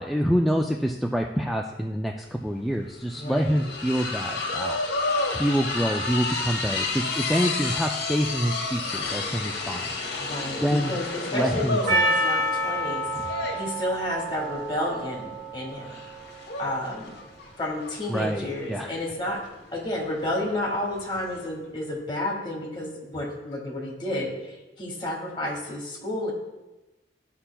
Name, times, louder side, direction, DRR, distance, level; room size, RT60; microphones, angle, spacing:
voice 1, 0.0-4.8 5.3-9.9 10.6-10.9 11.3-12.0 18.1-18.9, equal, ahead, 1 dB, 0.3 m, -26 dB
sound 1, 2.3-2.4 2.6-21.5, left 3 dB, 65° left, 1.1 m, -32 dB
voice 2, 3.1-3.6 10.2-15.9 16.6-17.1 17.6-19.4 19.7-26.3, left 1 dB, 25° left, -1 dB, 1.7 m, -31 dB
Percussion, 11.9-16.4, right 1 dB, 85° right, 2.6 m, -28 dB
13.0 x 5.6 x 2.2 m, 1.1 s
head